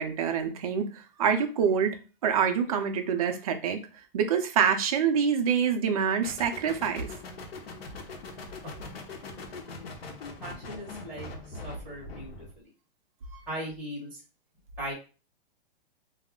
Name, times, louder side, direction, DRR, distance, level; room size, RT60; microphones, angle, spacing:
voice 1, 0.0-2.0 2.2-3.8 4.1-7.1, right 7 dB, 40° right, 6 dB, 0.5 m, -26 dB
sound 1, 6.2-12.6, left 3 dB, 85° left, 0.8 m, -42 dB
voice 2, 8.6-9.0 9.8-9.9 10.4-12.7 13.3-14.2 14.8-14.9, right 1 dB, 5° right, -6 dB, 0.9 m, -40 dB
2.4 x 2.1 x 3.6 m, 0.34 s
hypercardioid pair, 160°, 29 cm